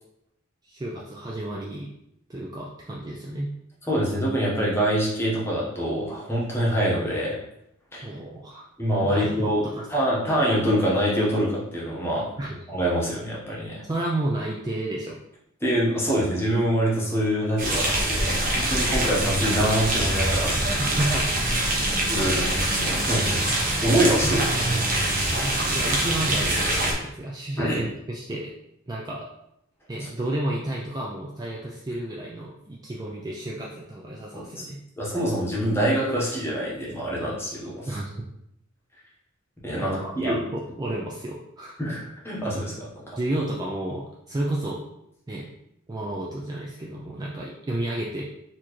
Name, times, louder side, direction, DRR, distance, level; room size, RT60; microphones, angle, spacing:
voice 1, 0.6-1.9 2.3-3.5 8.0-8.7 9.1-9.9 12.4-12.6 13.8-15.2 20.8-21.3 24.2-24.4 25.3-28.5 28.9-29.3 29.9-34.8 37.9-38.2 39.7-41.8 43.2-44.9 45.3-45.5 45.9-48.2, right 1 dB, 20° right, -3 dB, 0.3 m, -31 dB
voice 2, 3.9-7.4 7.9-8.1 8.8-9.6 9.9-12.3 12.7-13.8 15.6-20.5 22.1-24.4 25.0-25.4 27.6-27.8 30.0-30.1 34.3-34.6 35.0-38.0 39.6-40.4 41.8-42.9, equal, 10° left, -5 dB, 1.0 m, -25 dB
sound 1, 17.6-26.9, right 1 dB, 40° right, 0.8 m, -24 dB
4.2 x 2.8 x 3.0 m, 0.78 s
head